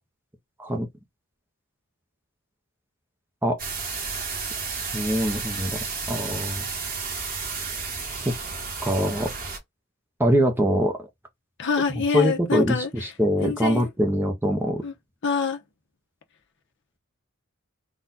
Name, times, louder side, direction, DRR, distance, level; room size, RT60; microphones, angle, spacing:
sound 1, 3.6-9.6, right 4 dB, 40° right, 1.2 m, -32 dB
voice 1, 4.7-5.8 6.1-6.6 8.3-8.4 8.8-9.3 10.2-11.1 11.9-14.8, equal, 10° right, 0.7 m, -23 dB
voice 2, 11.6-13.1 13.4-13.9 14.8-14.9 15.2-15.6, left 5 dB, 55° left, 1.0 m, -26 dB
4.1 x 2.4 x 3.9 m
head